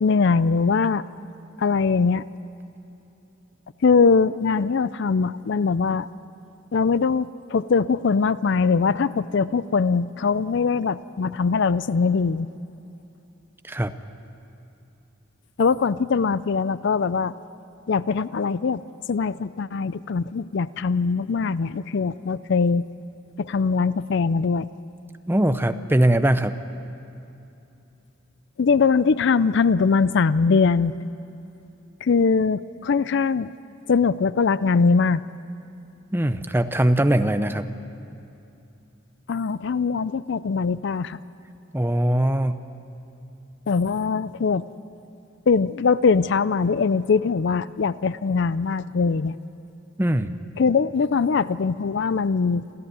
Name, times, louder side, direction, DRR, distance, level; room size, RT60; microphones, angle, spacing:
voice 1, 0.0-1.0 1.6-2.2 3.8-6.1 6.7-12.5 15.6-17.3 17.9-18.8 19.1-22.8 23.4-24.7 28.6-30.9 32.0-33.5 33.9-35.2 39.3-41.2 43.7-44.6 45.5-49.3 50.6-52.7, left 5 dB, 55° left, 17 dB, 0.4 m, -21 dB
voice 2, 25.3-26.5 36.1-37.7 41.7-42.6 50.0-50.3, right 1 dB, 10° right, 10 dB, 0.6 m, -21 dB
27.0 x 14.5 x 9.4 m, 2.8 s
head